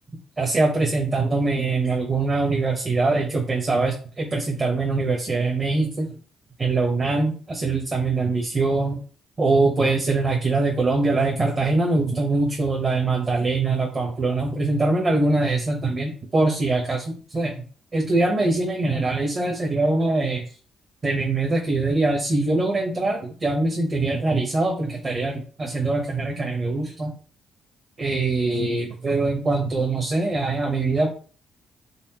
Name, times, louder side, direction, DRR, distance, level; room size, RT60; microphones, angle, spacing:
voice 1, 0.4-6.1 6.6-9.0 9.4-17.5 17.9-20.4 21.0-27.1 28.0-31.1, right 3 dB, 35° right, 0 dB, 1.0 m, -23 dB
4.2 x 3.6 x 2.9 m, 0.41 s
cardioid pair, 90°, 0 cm